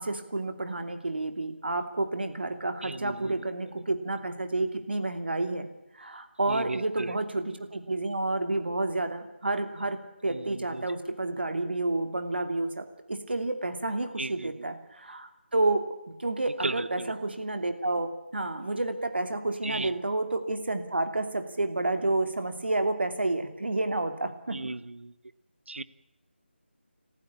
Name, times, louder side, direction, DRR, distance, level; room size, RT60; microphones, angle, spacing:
voice 1, 0.0-5.7 5.9-15.8 16.2-24.6, right 2 dB, 60° right, 8 dB, 2.9 m, -30 dB
voice 2, 2.8-3.7 6.5-7.2 10.3-10.9 14.2-14.7 16.6-17.1 19.6-19.9 24.5-25.1 25.7-25.8, right 2 dB, 75° right, 16 dB, 1.2 m, -36 dB
27.5 x 15.0 x 8.5 m, 0.87 s
figure-of-eight pair, 180°, 6 cm